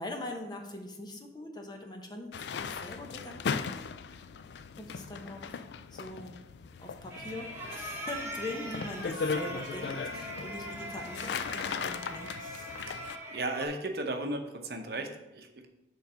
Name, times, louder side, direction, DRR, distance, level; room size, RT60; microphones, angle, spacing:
voice 1, 0.0-3.9 4.8-6.4 6.8-12.7, left 1 dB, 25° left, 3 dB, 0.8 m, -42 dB
sound 1, 2.3-13.2, left 5 dB, 75° left, 0.3 m, -38 dB
sound 2, 7.1-13.7, equal, 15° right, 1.0 m, -41 dB
voice 2, 13.3-15.7, right 2 dB, 60° right, 4 dB, 0.8 m, -35 dB
6.9 x 3.9 x 5.5 m, 0.95 s
head